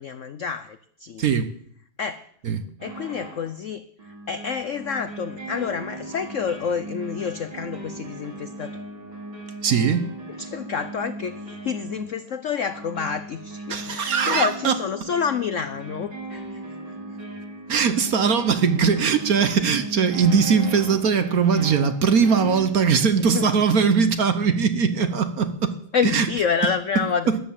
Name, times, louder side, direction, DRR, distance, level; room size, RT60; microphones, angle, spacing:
voice 1, 0.0-1.2 2.0-2.2 2.8-3.8 4.3-8.8 10.4-16.8 23.2-23.5 25.9-27.3, left 6 dB, 75° left, 0.7 m, -28 dB
voice 2, 1.2-1.5 2.4-2.6 9.6-10.1 13.7-14.8 17.7-25.8 26.0-26.3 27.3-27.4, right 6 dB, 55° right, 1.2 m, -20 dB
sound 1, 2.8-3.5 4.0-22.7, right 2 dB, 70° right, 5.7 m, -37 dB
13.0 x 11.0 x 7.3 m
omnidirectional pair, 2.2 m